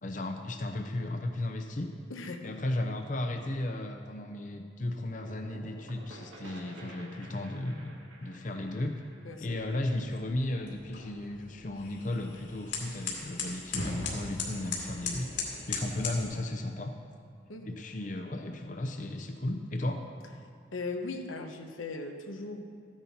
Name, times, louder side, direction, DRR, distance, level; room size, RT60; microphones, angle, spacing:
voice 1, 0.0-1.9 2.4-9.0 9.4-15.3 15.7-16.9 17.6-20.1, left 1 dB, 40° left, 4 dB, 0.6 m, -35 dB
voice 2, 2.1-2.5 9.2-9.6 17.5-17.7 20.7-22.6, left 3 dB, 90° left, 5 dB, 1.0 m, -38 dB
sound 1, 5.2-10.8, right 1 dB, 75° right, 2.1 m, -51 dB
sound 2, 9.5-16.2, left 4 dB, 65° left, 2.3 m, -38 dB
14.0 x 9.8 x 4.2 m, 2.3 s
head